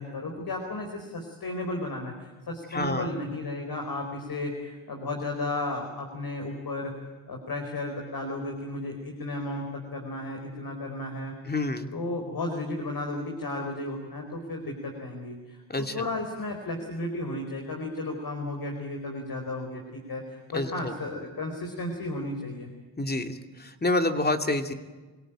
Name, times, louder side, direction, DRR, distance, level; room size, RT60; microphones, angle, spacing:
voice 1, 0.0-6.9 7.3-11.3 11.9-22.7, left 2 dB, 50° left, 3 dB, 4.6 m, -34 dB
voice 2, 2.7-3.1 11.5-11.9 15.7-16.1 20.5-20.9 23.0-24.7, left 2 dB, 20° left, 6 dB, 2.7 m, -28 dB
25.5 x 18.0 x 9.0 m, 1.3 s
supercardioid pair, 55°, 46 cm